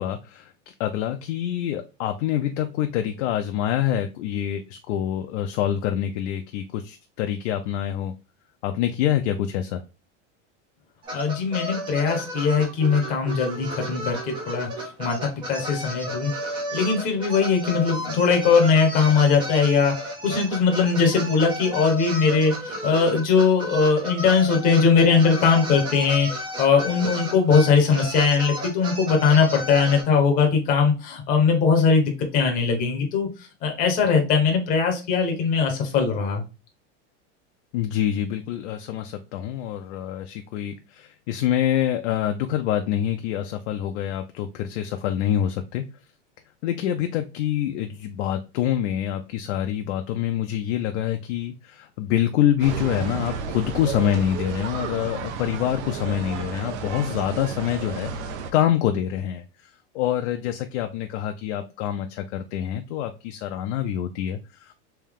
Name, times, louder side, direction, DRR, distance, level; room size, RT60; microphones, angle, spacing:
voice 1, 0.0-8.1 8.6-9.8 37.7-45.8 46.6-64.7, left 11 dB, 65° left, 6 dB, 0.5 m, -26 dB
sound 1, 11.0-30.0, equal, 15° right, 0.4 m, -33 dB
voice 2, 11.1-20.0 20.2-33.3 33.6-36.4, left 5 dB, 20° left, 2 dB, 0.7 m, -20 dB
sound 2, 52.6-58.5, right 6 dB, 70° right, 0.7 m, -32 dB
3.4 x 2.7 x 3.4 m, 0.30 s
supercardioid pair, 170°, 36 cm